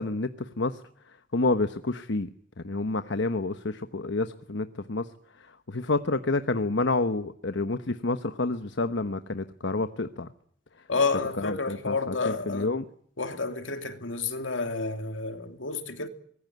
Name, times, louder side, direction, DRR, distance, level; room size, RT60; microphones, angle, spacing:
voice 1, 0.0-2.3 2.6-10.3 10.8-10.9 11.4-12.8, left 2 dB, 65° left, 1.1 m, -29 dB
voice 2, 10.9-12.7 13.2-16.1, left 4 dB, 80° left, 2.8 m, -30 dB
24.5 x 21.0 x 9.3 m
head